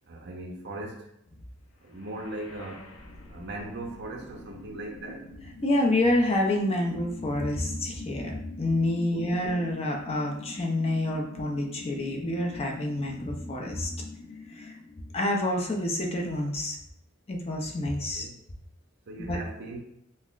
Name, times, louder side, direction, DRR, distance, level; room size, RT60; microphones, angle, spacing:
voice 1, 0.1-1.1 1.8-2.9 3.3-5.3 9.1-9.6 18.1-18.4 19.1-19.8, right 2 dB, 55° right, 1 dB, 0.6 m, -39 dB
sound 1, 1.8-15.8, left 3 dB, 85° left, 0.6 m, -44 dB
voice 2, 5.6-13.9 14.5-14.7 15.1-16.8 17.3-18.3 19.3-19.4, left 1 dB, 30° left, 0 dB, 0.5 m, -28 dB
5.5 x 2.0 x 2.4 m, 0.78 s
head